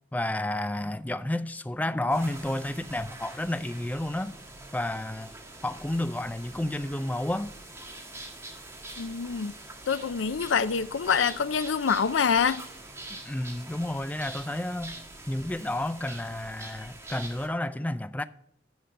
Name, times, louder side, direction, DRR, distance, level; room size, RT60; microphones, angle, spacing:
voice 1, 0.1-4.3 4.7-5.3 5.6-7.5 13.3-15.0 15.3-18.2, left 1 dB, 10° left, 0.3 m, -31 dB
sound 1, 2.1-17.5, right 2 dB, 15° right, 1.5 m, -44 dB
voice 2, 9.0-9.5 9.9-12.7, left 6 dB, 80° left, 0.5 m, -26 dB
10.0 x 5.9 x 5.3 m
head